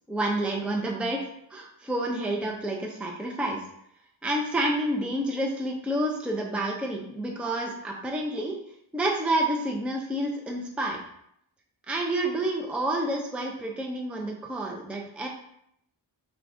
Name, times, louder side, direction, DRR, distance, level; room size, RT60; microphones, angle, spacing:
voice 1, 0.1-3.6 4.2-8.6 8.9-11.0 11.9-15.3, right 1 dB, 5° right, 0 dB, 0.5 m, -29 dB
6.3 x 2.4 x 2.6 m, 0.72 s
wide cardioid pair, 45°, 45 cm